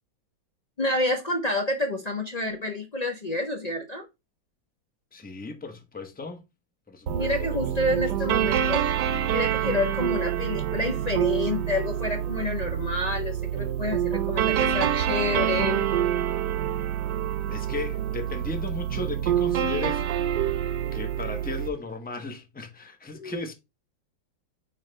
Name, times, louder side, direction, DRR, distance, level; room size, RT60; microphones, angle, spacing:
voice 1, 0.8-4.1 7.1-8.9 9.3-15.9 23.2-23.4, left 2 dB, 90° left, 0.3 m, -29 dB
voice 2, 5.1-6.4 6.9-7.9 8.4-8.5 17.4-20.5 20.9-23.5, left 3 dB, 15° left, 0.4 m, -36 dB
sound 1, 7.1-21.7, right 10 dB, 70° right, 1.2 m, -27 dB
9.1 x 3.2 x 3.2 m
omnidirectional pair, 2.1 m